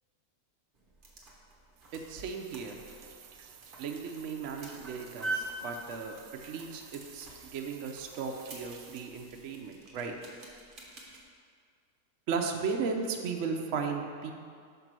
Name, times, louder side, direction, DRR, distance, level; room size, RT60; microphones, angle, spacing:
sound 1, 0.7-11.2, right 2 dB, 35° right, 1.2 m, -45 dB
sound 2, 1.8-9.6, right 7 dB, 80° right, 1.2 m, -54 dB
voice 1, 1.9-2.8 3.8-6.2 6.4-10.1 12.3-14.3, right 5 dB, 65° right, 3 dB, 0.8 m, -36 dB
5.8 x 5.3 x 6.0 m, 2.2 s
omnidirectional pair, 1.8 m